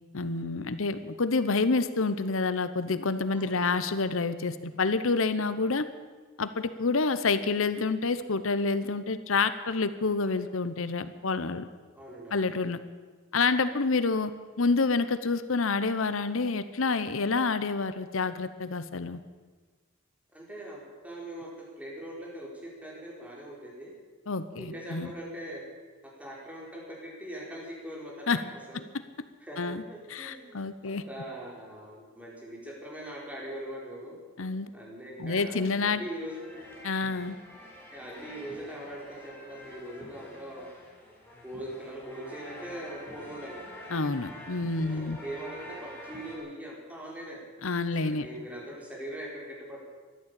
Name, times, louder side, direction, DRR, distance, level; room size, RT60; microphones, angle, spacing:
voice 1, 0.1-5.9 6.4-11.7 12.3-12.8 13.3-14.3 14.6-19.2 24.3-25.1 28.3-28.4 28.7-28.8 29.6-29.8 30.1-31.0 34.4-34.7 35.2-36.0 36.8-37.4 43.9-45.2 47.6-48.3, left 4 dB, 70° left, 12 dB, 0.9 m, -28 dB
voice 2, 3.3-3.8 11.9-12.4 20.3-22.5 22.8-23.9 24.6-25.6 26.2-28.8 29.4-34.2 34.7-36.5 37.9-40.7 41.4-43.6 44.9-47.4 48.0-49.8, right 1 dB, 5° right, -4 dB, 4.5 m, -41 dB
sound 1, 36.1-46.4, left 1 dB, 10° left, 3.7 m, -47 dB
14.0 x 11.5 x 8.4 m, 1.4 s
head